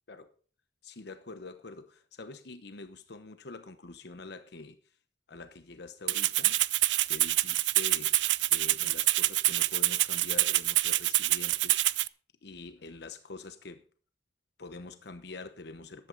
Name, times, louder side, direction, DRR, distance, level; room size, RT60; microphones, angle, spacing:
voice 1, 0.8-4.8 5.3-6.6 7.1-8.2 8.5-12.0 12.4-13.8 14.6-16.1, left 3 dB, 65° left, 1.0 m, -45 dB
Rattle (instrument), 6.1-12.1, right 16 dB, 85° right, 0.5 m, -26 dB
14.5 x 11.0 x 4.0 m
head